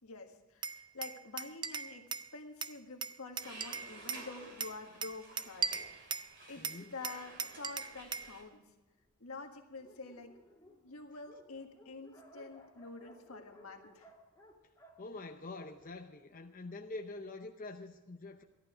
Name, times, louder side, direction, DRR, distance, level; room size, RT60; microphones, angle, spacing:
voice 1, 0.0-6.2 6.5-8.6 9.2-10.4 10.8-14.1, left 3 dB, 85° left, 4 dB, 1.6 m, -48 dB
Glass, 0.6-2.3 2.6-4.3 4.6-6.3 6.6-8.3, right 6 dB, 20° right, 0.4 m, -39 dB
sound 1, 3.4-8.4, right 2 dB, 55° right, 3.1 m, -53 dB
Dog, 5.4-8.3 9.0-9.1 9.4-9.5 9.7-16.1, equal, 10° left, 2.5 m, -61 dB
voice 2, 6.6-6.9 15.0-18.4, left 2 dB, 40° left, 4 dB, 0.7 m, -45 dB
14.0 x 11.5 x 5.0 m, 1.1 s
head